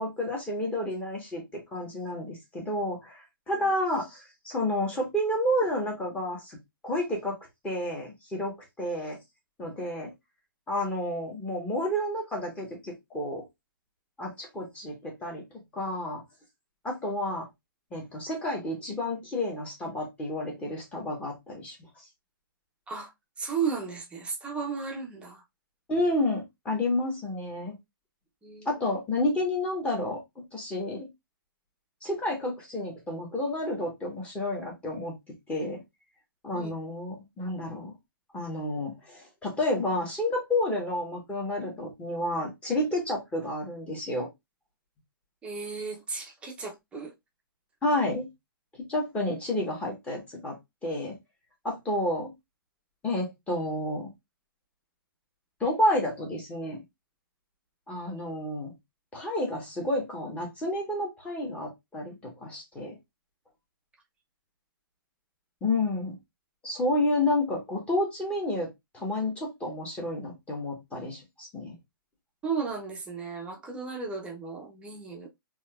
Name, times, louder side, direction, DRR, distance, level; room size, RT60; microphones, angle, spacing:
voice 1, 0.0-6.6 6.8-7.4 7.6-9.2 9.6-10.1 10.7-13.4 14.2-15.4 15.7-16.2 16.8-17.5 17.9-21.7 25.9-27.7 28.6-30.2 30.5-31.1 32.0-35.2 35.5-35.8 36.4-37.9 38.3-44.3 47.8-48.3 48.9-50.6 50.8-51.2 51.6-52.3 53.0-54.1 55.6-56.8 57.9-58.7 59.1-62.9 65.6-66.2 66.6-68.7 68.9-71.7, left 1 dB, 10° left, 1.4 m, -30 dB
voice 2, 23.4-25.4 28.4-28.7 36.5-36.7 45.4-47.1 72.4-75.3, right 5 dB, 10° right, 0.8 m, -34 dB
4.1 x 2.9 x 2.4 m
hypercardioid pair, 155°, 12 cm